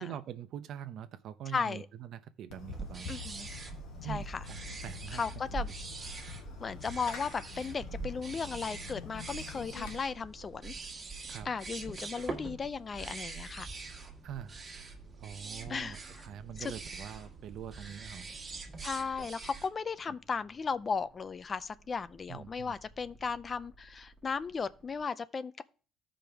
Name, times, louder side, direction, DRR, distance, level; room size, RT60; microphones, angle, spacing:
voice 1, 0.0-3.1 4.0-5.2 11.2-11.5 14.2-14.5 15.2-18.3 22.3-22.7, right 9 dB, 65° right, 0.7 m, -44 dB
voice 2, 1.5-1.9 3.1-3.5 4.0-4.4 5.1-5.7 6.6-10.7 11.5-13.7 15.7-16.0 16.6-16.7 18.8-25.6, left 5 dB, 30° left, 0.4 m, -36 dB
Fireworks, 2.5-9.9, left 5 dB, 85° left, 1.3 m, -46 dB
sound 1, 2.7-19.7, right 4 dB, 30° right, 1.6 m, -44 dB
sound 2, 9.7-25.0, right 1 dB, ahead, 1.3 m, -60 dB
14.0 x 5.1 x 3.4 m
cardioid pair, 120°, 0 cm